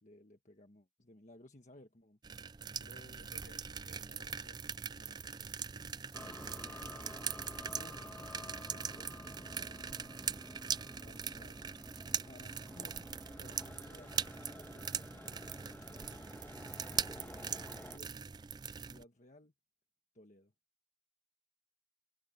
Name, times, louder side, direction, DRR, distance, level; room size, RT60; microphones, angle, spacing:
voice 1, 0.0-2.2 2.8-3.2 4.4-4.5 7.7-8.1 8.6-10.1 11.0-11.6 12.2-13.1 13.4-14.9 16.8-17.3 17.9-19.5 20.1-20.5, left 1 dB, 40° left, 1.4 m, -59 dB
sound 1, 2.2-19.0, right 7 dB, 20° right, 0.3 m, -41 dB
voice 2, 2.9-6.0 10.6-11.1, left 2 dB, 70° left, 5.7 m, -64 dB
sound 2, 6.1-18.0, left 1 dB, 10° left, 1.4 m, -51 dB
head